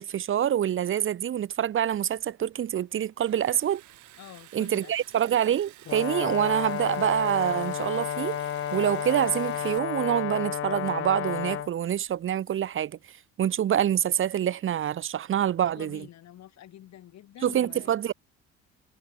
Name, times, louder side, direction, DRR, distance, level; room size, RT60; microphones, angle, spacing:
voice 1, 0.0-3.8 4.5-8.4 8.7-13.0 13.4-16.0 17.4-18.1, right 10 dB, 45° right, 0.7 m, -26 dB
Liquid, 1.7-9.8, right 16 dB, 75° right, 4.8 m, -52 dB
voice 2, 4.2-4.9 15.7-18.0, left 12 dB, 65° left, 2.8 m, -47 dB
Brass instrument, 5.9-11.7, left 10 dB, 45° left, 1.0 m, -31 dB
cardioid pair, 85°, 29 cm